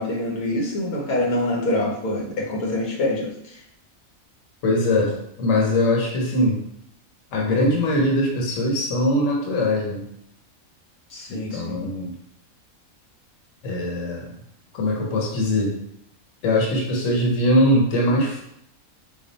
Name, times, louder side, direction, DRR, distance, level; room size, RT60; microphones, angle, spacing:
voice 1, 0.0-3.6 11.1-11.8, left 1 dB, 85° left, -1 dB, 1.5 m, -25 dB
voice 2, 4.6-6.6 7.3-10.0 11.3-12.1 13.6-14.3 14.7-15.8 16.4-18.4, left 1 dB, 65° left, -1 dB, 1.2 m, -21 dB
5.0 x 2.4 x 4.0 m, 0.74 s
omnidirectional pair, 1.5 m